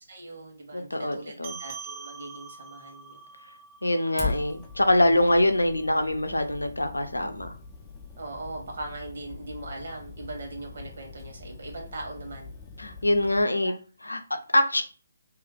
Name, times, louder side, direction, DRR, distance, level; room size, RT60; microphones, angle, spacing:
voice 1, 0.1-3.2 5.1-5.3 8.2-12.5 13.6-13.7, right 2 dB, 55° right, 0 dB, 1.3 m, -40 dB
voice 2, 0.7-1.6 3.8-7.5 12.8-13.7 14.0-14.2 14.5-14.8, left 1 dB, 75° left, 7 dB, 0.6 m, -24 dB
sound 1, 1.4-6.2, right 5 dB, 30° right, 0.5 m, -45 dB
Fire, 4.2-13.4, left 4 dB, 15° left, 0.5 m, -41 dB
2.8 x 2.3 x 3.8 m, 0.37 s
figure-of-eight pair, 140°, 0 cm